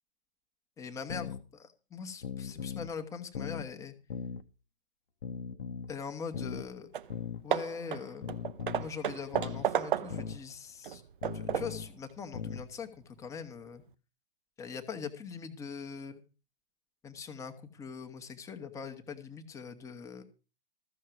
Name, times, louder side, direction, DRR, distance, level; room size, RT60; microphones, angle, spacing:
voice 1, 0.8-3.9 5.9-6.9 7.4-8.3 8.8-11.0 11.3-13.8 14.6-16.2 17.0-20.2, left 6 dB, 10° left, 6 dB, 1.0 m, -42 dB
sound 1, 1.1-1.4 2.2-2.9 3.3-3.7 4.1-4.4 5.2-5.9 6.3-6.7 7.1-7.4 8.2-8.9 9.3-9.7 10.1-10.4 11.2-11.9 12.3-12.7, left 7 dB, 60° left, 1.0 m, -39 dB
Hammer / Wood, 6.6-6.7 6.9-7.2 7.5-10.4 10.8-11.9, right 9 dB, 55° right, 0.6 m, -34 dB
14.0 x 6.5 x 6.2 m, 0.35 s
figure-of-eight pair, 125°, 31 cm